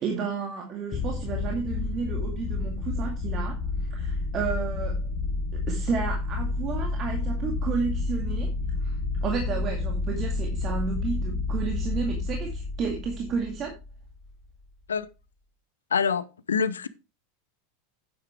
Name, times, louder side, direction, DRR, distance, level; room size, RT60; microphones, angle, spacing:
voice 1, 0.0-5.0 5.5-8.6 8.8-9.0 9.2-13.7, right 5 dB, 35° right, 2.1 m, -32 dB
sound 1, 0.9-14.2, left 3 dB, 30° left, 2.0 m, -30 dB
voice 2, 15.9-16.9, left 6 dB, 80° left, 0.7 m, -26 dB
9.3 x 9.3 x 3.3 m
figure-of-eight pair, 85°, 0 cm